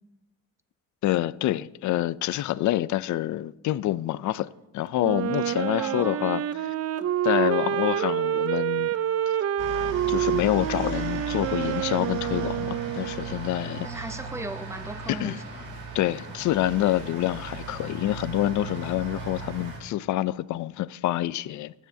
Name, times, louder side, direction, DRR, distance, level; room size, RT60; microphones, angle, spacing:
voice 1, 1.0-4.5 4.7-6.7 7.2-8.9 10.1-14.1 15.1-15.4 15.9-21.7, left 14 dB, 70° left, 0.5 m, -27 dB
Wind instrument woodwind instrument, 5.0-13.4, right 10 dB, 55° right, 0.6 m, -27 dB
voice 2, 5.8-6.4 13.8-15.4, right 2 dB, 10° right, 1.0 m, -37 dB
sound 1, 9.6-19.8, right 4 dB, 80° right, 3.9 m, -37 dB
21.0 x 9.3 x 2.8 m
cardioid pair, 90°, 30 cm